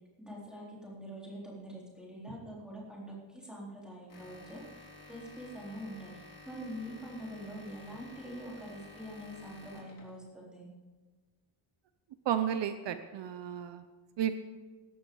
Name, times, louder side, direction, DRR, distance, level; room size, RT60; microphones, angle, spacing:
voice 1, 0.2-4.6 5.1-6.1 6.5-10.7, equal, ahead, -5 dB, 3.8 m, -44 dB
sound 1, 4.1-10.3, left 2 dB, 45° left, 3.3 m, -53 dB
voice 2, 12.2-13.8 14.2-14.3, right 10 dB, 65° right, 9 dB, 0.8 m, -32 dB
17.5 x 13.0 x 3.9 m, 1.4 s
wide cardioid pair, 170°, 47 cm